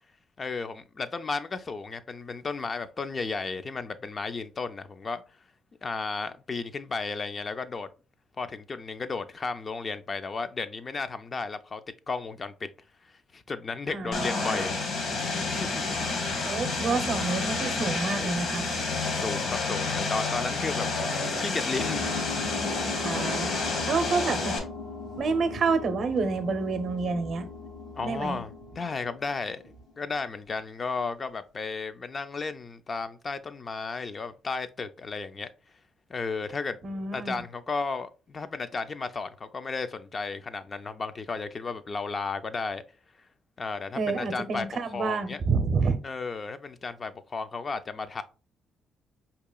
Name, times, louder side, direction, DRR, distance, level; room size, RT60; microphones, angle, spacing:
voice 1, 0.4-5.2 5.8-7.9 8.4-11.8 12.1-12.7 13.3-14.8 15.5-16.0 19.2-22.1 28.0-35.5 36.1-36.8 37.1-42.8 43.6-44.7 44.9-45.4 46.0-48.2, left 4 dB, 35° left, 0.3 m, -34 dB
voice 2, 13.9-14.7 16.4-18.7 23.0-24.6 25.2-27.5 28.0-28.4 36.8-37.4 44.0-46.0, right 4 dB, 60° right, 0.6 m, -28 dB
Vehicle, 14.1-24.6, left 3 dB, 65° left, 1.1 m, -29 dB
sound 1, 21.8-29.9, left 4 dB, 85° left, 0.6 m, -39 dB
4.7 x 2.8 x 2.2 m
cardioid pair, 90°, 0 cm